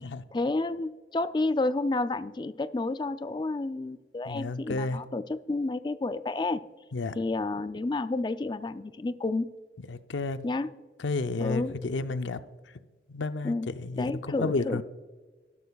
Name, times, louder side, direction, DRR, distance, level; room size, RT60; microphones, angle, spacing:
voice 1, 0.0-6.6 7.1-9.5 10.4-10.7 11.4-11.8 13.4-13.7 14.0-14.8, left 2 dB, 25° left, 13 dB, 0.3 m, -30 dB
voice 2, 4.3-5.0 6.9-7.1 9.9-10.4 11.0-12.4 13.1-13.5 13.8-14.8, left 3 dB, 85° left, 11 dB, 0.5 m, -31 dB
12.5 x 12.0 x 2.3 m, 1.4 s
head